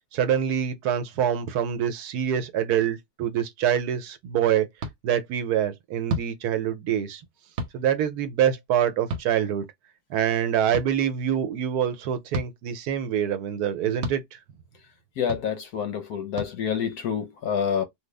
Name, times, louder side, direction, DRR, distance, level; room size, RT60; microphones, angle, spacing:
voice 1, 0.1-4.7 5.0-7.2 7.7-9.6 10.1-14.2, right 9 dB, 85° right, 1.2 m, -25 dB
sound 1, 4.8-4.9 6.1-6.3 7.6-7.7 9.1-9.3 10.7-10.9 12.3-12.5 14.0-14.2 15.3-15.4 16.4-16.5, right 2 dB, 55° right, 0.9 m, -30 dB
voice 2, 15.2-17.8, left 7 dB, 80° left, 1.3 m, -27 dB
3.1 x 2.3 x 3.3 m
omnidirectional pair, 1.6 m